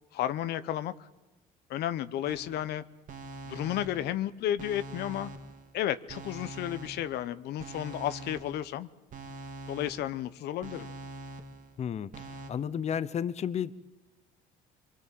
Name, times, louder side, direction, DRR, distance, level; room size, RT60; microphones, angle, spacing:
voice 1, 0.1-0.9 1.7-2.8 3.5-5.3 5.7-8.9 9.7-10.9, left 12 dB, 75° left, 13 dB, 0.9 m, -32 dB
sound 1, 2.2-2.7 3.1-4.2 4.6-5.7 6.1-7.2 7.6-8.7 9.1-10.2 10.6-11.7 12.1-12.5, right 2 dB, 50° right, 2.2 m, -44 dB
voice 2, 11.8-13.8, left 8 dB, 40° left, 15 dB, 0.9 m, -33 dB
25.5 x 23.5 x 7.6 m, 1.0 s
cardioid pair, 110°, 17 cm